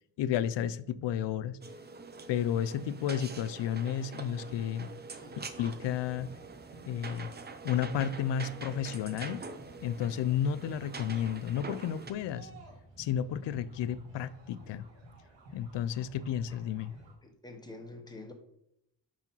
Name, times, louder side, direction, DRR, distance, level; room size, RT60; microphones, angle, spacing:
voice 1, 0.2-1.6 2.3-4.9 5.4-6.3 6.9-7.3 7.6-9.4 9.8-12.5 13.0-14.9 15.5-16.9, left 9 dB, 75° left, 16 dB, 0.5 m, -32 dB
sound 1, 1.6-12.1, right 4 dB, 25° right, 0.5 m, -45 dB
sound 2, 5.2-17.1, right 2 dB, 85° right, 2.4 m, -55 dB
voice 2, 17.2-18.3, left 2 dB, 10° left, 4 dB, 1.0 m, -47 dB
5.7 x 4.8 x 5.4 m, 0.78 s
wide cardioid pair, 160°, 43 cm